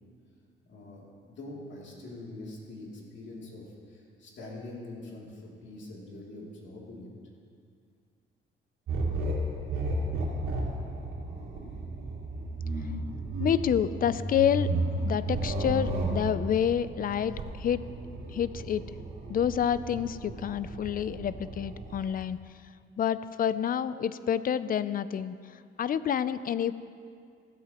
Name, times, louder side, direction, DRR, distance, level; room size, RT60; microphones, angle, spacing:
voice 1, 0.7-7.1, left 2 dB, 60° left, -3 dB, 2.9 m, -44 dB
sound 1, 8.9-22.0, right 2 dB, 85° right, 2.6 m, -33 dB
voice 2, 13.4-14.7 15.0-17.8 18.3-18.8 19.3-22.4 23.0-25.4 25.8-26.8, left 9 dB, 45° left, 15 dB, 0.4 m, -28 dB
15.5 x 12.5 x 3.0 m, 2.3 s
cardioid pair, 120°, 21 cm